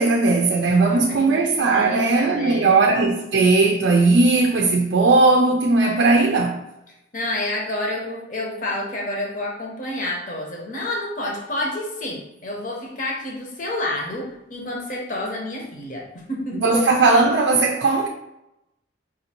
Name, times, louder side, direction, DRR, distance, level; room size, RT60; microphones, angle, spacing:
voice 1, 0.0-6.6 16.5-18.1, right 3 dB, 70° right, 0.4 m, -18 dB
voice 2, 0.9-1.4 1.7-2.8 7.1-16.6, left 1 dB, 45° left, 0.8 m, -29 dB
5.1 x 2.6 x 2.9 m
head